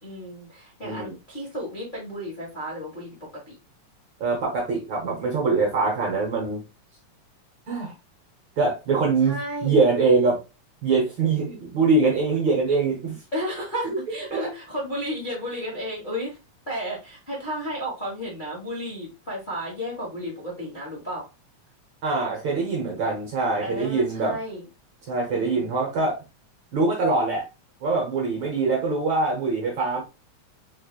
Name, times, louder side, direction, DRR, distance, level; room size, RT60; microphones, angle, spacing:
voice 1, 0.0-3.2 3.5-3.6 9.2-9.8 13.3-16.4 16.7-21.3 23.6-24.6 25.3-25.7, equal, 45° left, -6 dB, 0.6 m, -33 dB
voice 2, 0.8-1.1 4.2-6.6 7.7-7.9 8.6-9.3 9.6-10.4 10.8-13.2 14.3-14.4 22.0-24.4 25.1-26.2 26.7-27.4 27.8-30.0, right 3 dB, 55° right, -2 dB, 1.5 m, -23 dB
4.5 x 3.3 x 2.4 m, 0.27 s
omnidirectional pair, 3.4 m